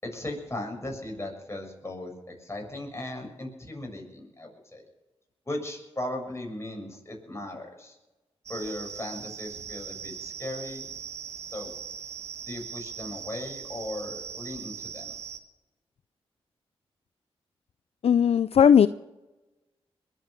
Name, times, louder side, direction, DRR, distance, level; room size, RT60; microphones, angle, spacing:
voice 1, 0.0-4.8 5.5-8.0 8.5-10.9 11.5-11.7 12.5-15.1, left 1 dB, 25° left, 1 dB, 7.1 m, -37 dB
sound 1, 8.5-15.4, right 7 dB, 80° right, 1.1 m, -40 dB
voice 2, 18.0-18.9, left 8 dB, 65° left, 15 dB, 0.4 m, -17 dB
21.5 x 8.4 x 6.9 m, 1.0 s
cardioid pair, 45°, 11 cm